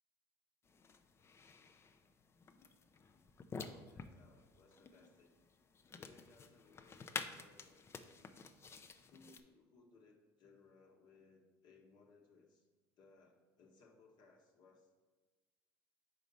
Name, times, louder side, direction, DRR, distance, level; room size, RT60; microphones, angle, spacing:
sound 1, 0.7-9.4, left 5 dB, 30° left, 0.5 m, -51 dB
voice 1, 3.6-5.3 5.9-7.8 9.1-12.7 13.0-14.9, left 3 dB, 60° left, 0 dB, 1.0 m, -65 dB
4.8 x 4.0 x 5.4 m, 1.3 s
supercardioid pair, 90°, 9 cm